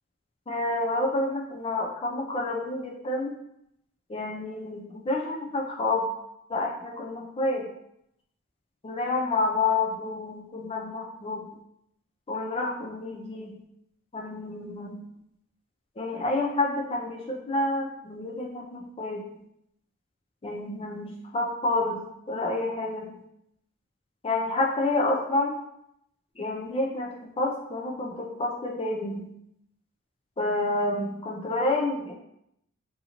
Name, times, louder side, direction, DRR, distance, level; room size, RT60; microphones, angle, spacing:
voice 1, 0.5-3.3 4.1-6.1 6.5-7.7 8.8-11.5 12.3-13.5 14.1-15.0 16.0-19.2 20.4-22.0 22.3-23.1 24.2-25.5 26.4-29.2 30.4-32.1, left 2 dB, 25° left, -1 dB, 0.4 m, -29 dB
3.7 x 2.7 x 2.9 m, 0.77 s
head